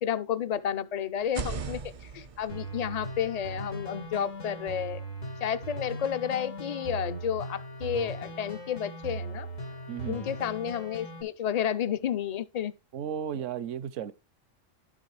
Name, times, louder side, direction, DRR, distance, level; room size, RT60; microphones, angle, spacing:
voice 1, 0.0-5.0 5.4-9.5 10.1-12.7 13.3-13.4, left 9 dB, 45° left, 0.5 m, -31 dB
sound 1, 1.2-5.0, right 5 dB, 50° right, 0.4 m, -41 dB
sound 2, 2.5-11.2, right 2 dB, 80° left, 2.2 m, -39 dB
voice 2, 9.9-10.3 12.9-14.1, right 9 dB, 75° right, 1.0 m, -34 dB
11.0 x 7.3 x 3.3 m
omnidirectional pair, 1.3 m